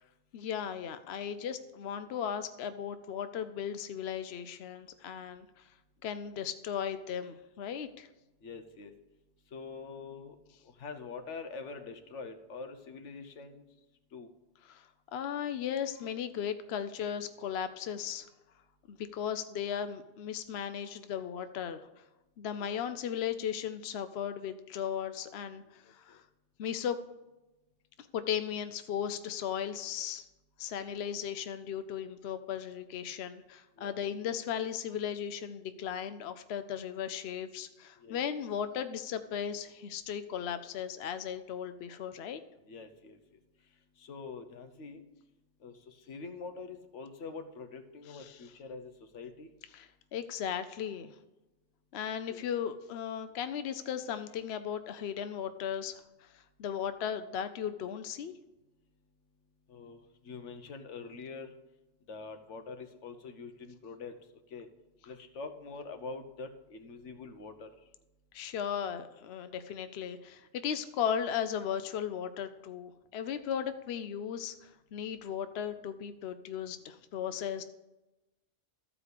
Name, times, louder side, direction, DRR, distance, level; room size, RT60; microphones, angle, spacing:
voice 1, 0.3-5.5 6.0-8.1 14.7-14.8 15.1-18.3 18.9-21.9 22.4-26.2 26.6-27.0 28.0-30.2 30.6-42.4 48.1-48.4 49.7-51.1 51.9-58.3 68.3-77.6, left 8 dB, 65° left, 10 dB, 0.8 m, -36 dB
voice 2, 8.4-8.9 9.5-10.3 10.8-13.6 14.1-14.3 22.6-22.8 26.1-26.2 33.8-34.0 38.0-38.2 42.7-43.2 44.0-45.0 45.6-49.5 52.3-52.4 59.7-60.0 60.2-61.5 62.1-64.1 64.5-64.7 65.1-67.7, left 4 dB, 90° left, 7 dB, 1.3 m, -44 dB
13.5 x 5.0 x 6.6 m, 1.0 s
omnidirectional pair, 1.2 m